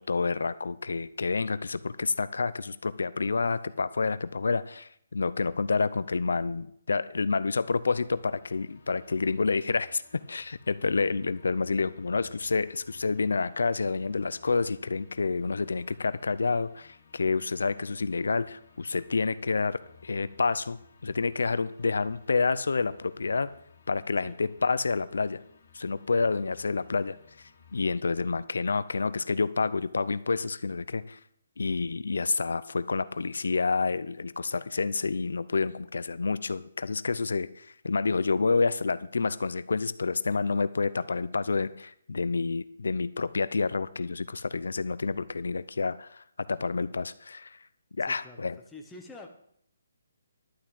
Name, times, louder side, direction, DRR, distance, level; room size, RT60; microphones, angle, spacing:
voice 1, 0.0-10.0 10.3-23.5 23.9-25.4 25.7-27.2 27.7-31.2 31.6-46.2 46.5-47.6 48.0-48.6, left 4 dB, 80° left, 15 dB, 0.6 m, -29 dB
sound 1, 8.0-27.9, left 6 dB, 45° left, 1.8 m, -59 dB
voice 2, 48.0-49.3, left 2 dB, 5° left, 0 dB, 0.8 m, -47 dB
11.5 x 6.0 x 8.5 m, 0.69 s
hypercardioid pair, 175°, 0 cm